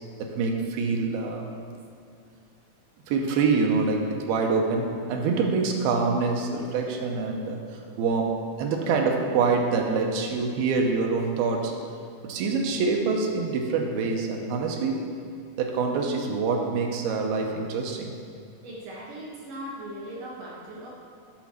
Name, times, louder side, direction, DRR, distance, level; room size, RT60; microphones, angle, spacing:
voice 1, 0.2-1.5 3.1-11.7 12.2-15.1 15.6-18.1, right 4 dB, 85° right, 2 dB, 2.7 m, -26 dB
voice 2, 18.6-20.9, right 1 dB, 70° right, -4 dB, 2.4 m, -39 dB
9.3 x 4.2 x 6.3 m, 2.3 s
omnidirectional pair, 4.2 m